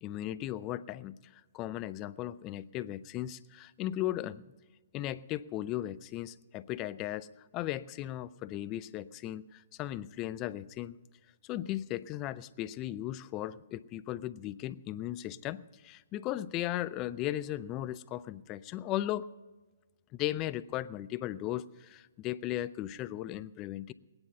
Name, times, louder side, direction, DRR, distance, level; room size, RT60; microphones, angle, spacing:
voice 1, 0.0-4.4 4.9-7.3 7.5-11.0 11.4-19.3 20.1-23.9, left 13 dB, 25° left, 16 dB, 0.5 m, -37 dB
20.0 x 9.9 x 5.5 m, 1.3 s
hypercardioid pair, 140°, 0 cm